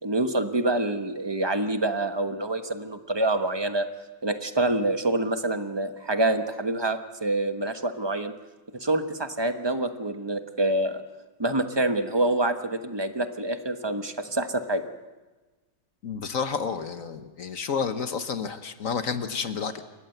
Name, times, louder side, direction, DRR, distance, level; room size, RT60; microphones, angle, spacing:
voice 1, 0.0-3.9 4.2-8.3 8.8-11.0 11.4-14.9, right 2 dB, 20° right, 8 dB, 0.9 m, -26 dB
voice 2, 16.0-19.8, left 6 dB, 50° left, 9 dB, 1.4 m, -30 dB
28.0 x 15.0 x 7.9 m, 1.2 s
omnidirectional pair, 1.9 m